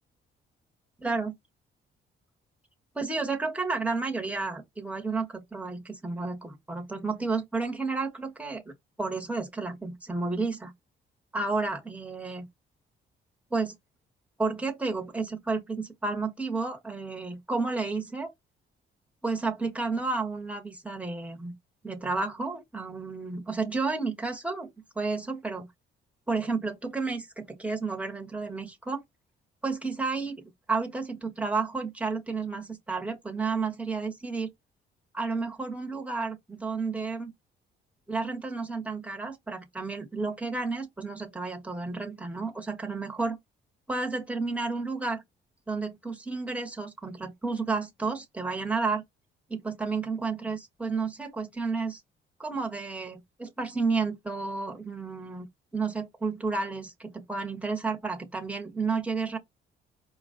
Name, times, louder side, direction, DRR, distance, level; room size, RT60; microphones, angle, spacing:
voice 1, 1.0-1.3 2.9-8.7 9.0-10.7 11.3-12.5 13.5-13.7 14.4-18.3 19.2-21.5 21.8-25.7 26.3-29.0 29.6-34.5 35.1-37.3 38.1-43.4 43.9-45.2 45.7-49.0 49.5-52.0 52.4-55.5 55.7-59.4, right 4 dB, 5° right, 1.3 m, -31 dB
4.8 x 2.3 x 3.7 m
cardioid pair, 90°, 20 cm